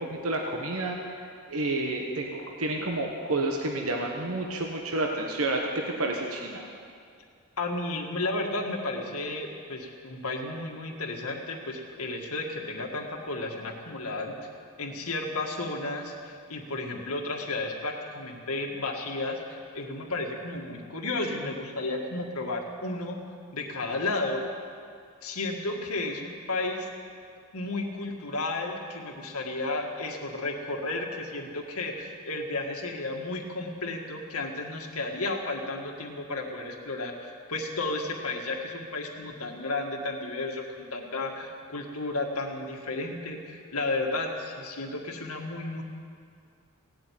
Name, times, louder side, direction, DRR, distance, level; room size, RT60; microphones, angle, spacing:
voice 1, 0.0-5.6 6.0-6.7, right 2 dB, 75° right, 1 dB, 1.3 m, -30 dB
voice 2, 7.6-14.4 14.8-23.2 23.5-24.4 25.2-26.9 27.5-45.8, left 2 dB, 85° left, 1 dB, 1.9 m, -33 dB
17.0 x 7.9 x 9.4 m, 2.3 s
head